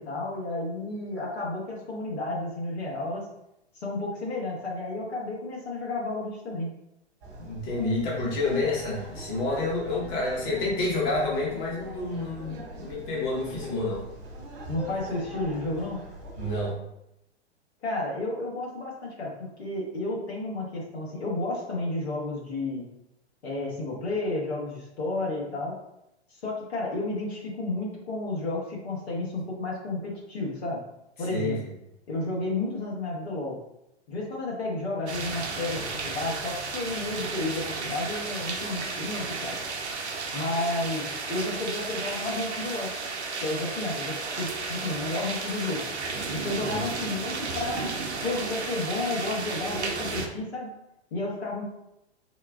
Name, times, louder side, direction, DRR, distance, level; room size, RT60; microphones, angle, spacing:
voice 1, 0.0-3.3 3.7-6.7 14.7-16.0 17.8-22.9 23.4-25.8 26.3-30.8 31.2-31.6 32.1-33.6 34.1-39.6 40.3-42.9 43.4-45.9 46.3-47.9 48.2-50.7 51.1-51.6, left 2 dB, 70° left, -3 dB, 1.4 m, -32 dB
sound 1, 7.2-16.7, right 1 dB, 35° right, 1.5 m, -42 dB
voice 2, 7.4-14.0 16.4-16.8 31.2-31.7 46.4-46.8, left 2 dB, 45° left, -4 dB, 1.4 m, -29 dB
sound 2, 35.1-50.3, right 4 dB, 75° right, 0.7 m, -33 dB
4.4 x 2.3 x 3.5 m, 0.84 s
figure-of-eight pair, 110°, 34 cm